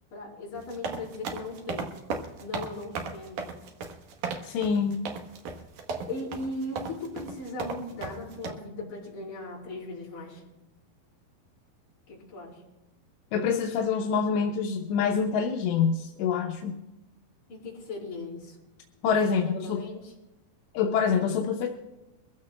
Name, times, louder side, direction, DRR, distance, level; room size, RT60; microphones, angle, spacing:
voice 1, 0.1-2.0 2.4-3.5 6.1-10.4 12.1-12.6 17.5-18.6 19.3-20.1, left 2 dB, 50° left, -5 dB, 5.8 m, -38 dB
sound 1, 0.5-8.5, right 4 dB, 65° right, 2.1 m, -35 dB
voice 2, 4.4-5.0 13.3-16.8 19.0-19.8 20.7-21.7, left 6 dB, 85° left, 1 dB, 3.0 m, -26 dB
23.5 x 15.0 x 2.2 m, 1.0 s
omnidirectional pair, 4.9 m